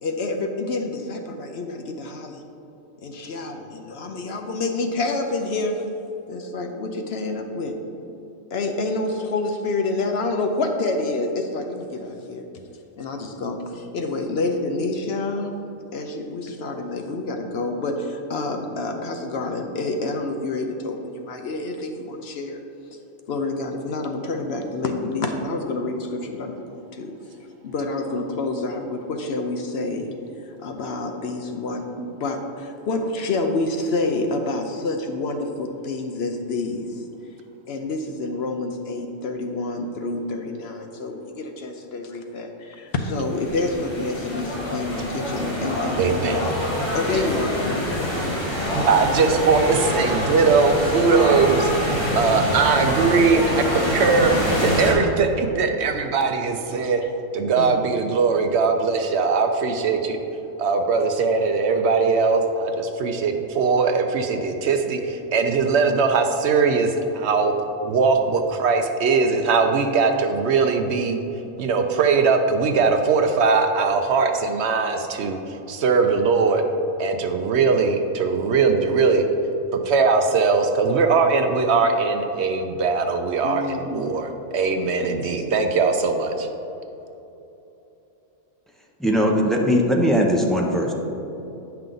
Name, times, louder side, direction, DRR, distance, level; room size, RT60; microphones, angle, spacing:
voice 1, 0.0-2.4 3.0-5.8 6.3-7.8 8.5-12.5 13.0-15.6 15.9-22.6 23.3-27.1 27.6-30.1 30.6-37.0 37.7-46.5 46.9-48.4 57.6-57.8 69.8-69.9 83.4-84.2 85.0-85.3, left 2 dB, 60° left, 4 dB, 0.8 m, -28 dB
sound 1, 43.0-54.9, equal, 20° left, 1.7 m, -25 dB
voice 2, 46.0-46.4 47.1-47.2 48.7-57.0 57.3-60.2 60.6-67.5 67.8-71.2 71.6-75.4 75.7-76.6 77.0-79.2 79.7-86.5, right 4 dB, 65° right, 5 dB, 0.8 m, -20 dB
voice 3, 89.0-90.9, equal, ahead, -1 dB, 0.4 m, -19 dB
9.1 x 5.7 x 3.8 m, 3.0 s
omnidirectional pair, 1.3 m